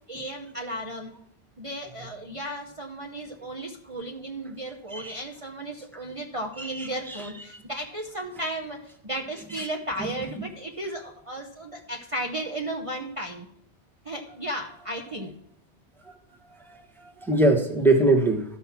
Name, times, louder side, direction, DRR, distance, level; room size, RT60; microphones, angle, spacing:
voice 1, 0.1-1.1 1.6-13.5 14.0-15.3, right 1 dB, 30° right, 0 dB, 0.9 m, -34 dB
voice 2, 6.6-7.2 7.5-7.6 9.5-9.7 17.0-18.4, right 2 dB, ahead, 1 dB, 1.1 m, -22 dB
13.0 x 5.5 x 5.9 m, 0.72 s
omnidirectional pair, 1.2 m